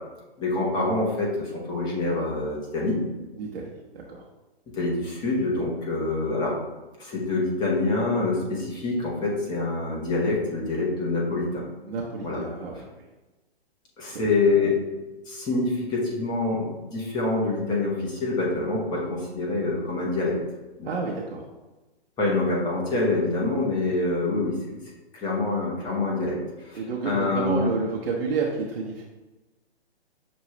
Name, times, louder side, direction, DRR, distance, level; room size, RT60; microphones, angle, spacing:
voice 1, 0.4-3.0 4.7-6.5 7.0-11.6 12.2-12.4 14.0-14.9 15.3-20.4 20.8-20.9 22.2-24.5 25.1-27.7, left 2 dB, 15° left, -4 dB, 0.8 m, -26 dB
voice 2, 11.8-12.8 14.1-14.2 20.9-21.4 26.7-29.0, right 4 dB, 60° right, -3 dB, 0.8 m, -29 dB
6.1 x 2.3 x 3.0 m, 1.1 s
hypercardioid pair, 135°, 32 cm